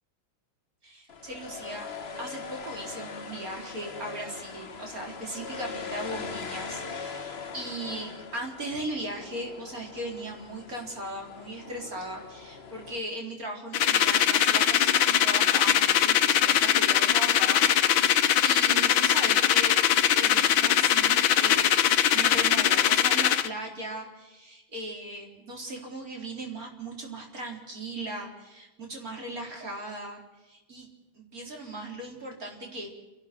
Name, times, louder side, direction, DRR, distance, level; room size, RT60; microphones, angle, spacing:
voice 1, 0.8-1.9 2.2-19.8 20.1-21.7 22.1-30.9 31.1-32.9, right 1 dB, 45° right, 1 dB, 4.5 m, -38 dB
sound 1, 1.1-13.0, left 5 dB, 35° left, 1.3 m, -41 dB
sound 2, 13.7-23.5, left 10 dB, 75° left, 1.7 m, -22 dB
30.0 x 11.5 x 7.4 m, 1.1 s
omnidirectional pair, 2.2 m